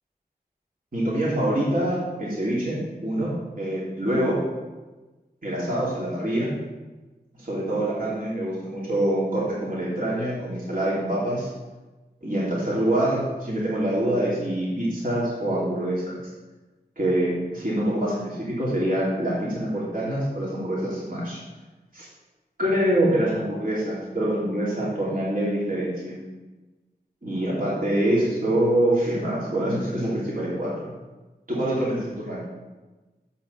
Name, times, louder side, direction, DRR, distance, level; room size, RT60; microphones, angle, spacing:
voice 1, 0.9-4.4 5.4-6.5 7.4-11.5 12.2-16.2 17.0-21.4 21.9-22.1 22.6-26.2 27.2-30.9 31.5-32.5, right 1 dB, 55° right, -7 dB, 2.9 m, -25 dB
6.6 x 5.6 x 7.0 m, 1.2 s
wide cardioid pair, 40°, 17 cm